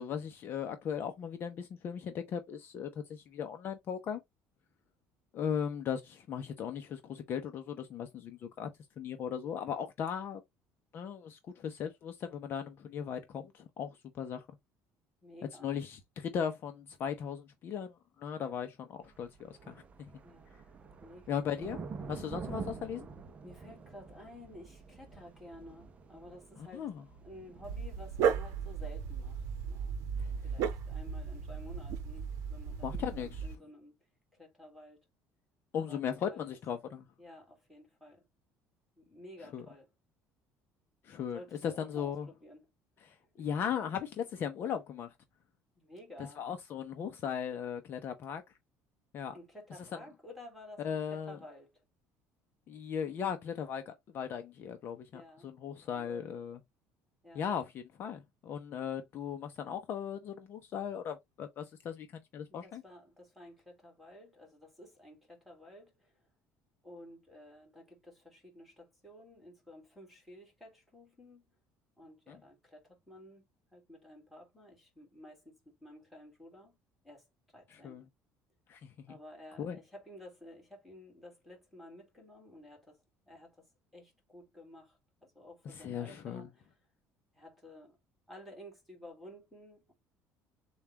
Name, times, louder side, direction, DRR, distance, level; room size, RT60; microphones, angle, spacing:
voice 1, 0.0-4.2 5.3-8.7 9.0-10.4 10.9-14.5 15.6-20.1 21.3-21.8 22.1-23.1 26.7-27.0 30.2-30.4 32.8-33.5 35.7-37.1 39.5-39.6 41.0-42.3 43.0-45.1 46.4-48.4 49.1-49.3 50.8-51.4 52.7-56.6 57.3-62.1 62.3-62.8 72.3-72.4 77.7-78.0 78.7-78.9 79.6-79.8 85.7-86.5, left 8 dB, 40° left, 0.7 m, -38 dB
voice 2, 15.2-15.7 20.2-20.7 21.0-21.5 23.4-26.9 27.2-29.9 30.4-33.9 34.3-35.0 35.7-36.0 36.3-36.6 37.2-38.3 39.0-39.9 41.3-42.7 43.4-43.5 45.8-46.5 49.3-51.8 55.1-55.5 55.9-56.4 57.2-57.5 62.5-66.1 66.8-71.4 72.0-76.8 77.0-77.3 77.5-78.0 79.1-83.0 83.3-86.7 87.3-88.0 88.3-89.9, left 1 dB, ahead, 1.9 m, -53 dB
sound 1, 19.0-29.9, right 4 dB, 25° right, 0.6 m, -48 dB
Dog, 27.6-33.5, right 6 dB, 65° right, 0.8 m, -35 dB
7.0 x 2.3 x 2.9 m
cardioid pair, 160°, 6 cm